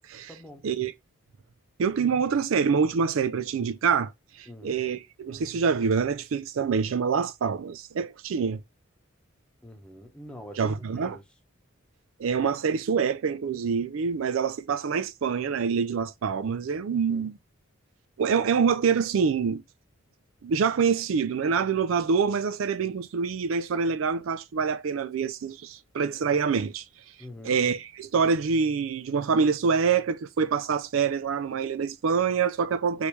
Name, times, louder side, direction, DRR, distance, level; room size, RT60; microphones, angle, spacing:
voice 1, 0.3-0.7 4.5-4.8 9.6-10.6 10.9-11.2 16.9-17.3 27.2-27.6, left 1 dB, 5° left, 1.0 m, -45 dB
voice 2, 1.8-4.1 4.4-8.6 10.6-11.2 12.2-17.4 18.2-19.6 20.4-26.8 27.4-33.1, right 6 dB, 85° right, 0.4 m, -26 dB
5.1 x 3.2 x 3.1 m
head